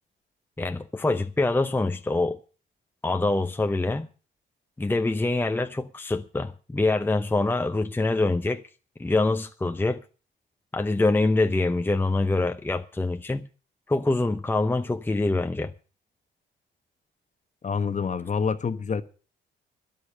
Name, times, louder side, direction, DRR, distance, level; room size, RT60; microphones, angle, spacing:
voice 1, 0.6-2.4 3.0-4.1 4.8-8.6 9.0-10.0 10.7-13.5 13.9-15.7, left 2 dB, 10° left, 0.7 m, -25 dB
voice 2, 17.6-19.0, left 6 dB, 35° left, 1.1 m, -27 dB
13.0 x 10.5 x 6.6 m
cardioid pair, 90°, 20 cm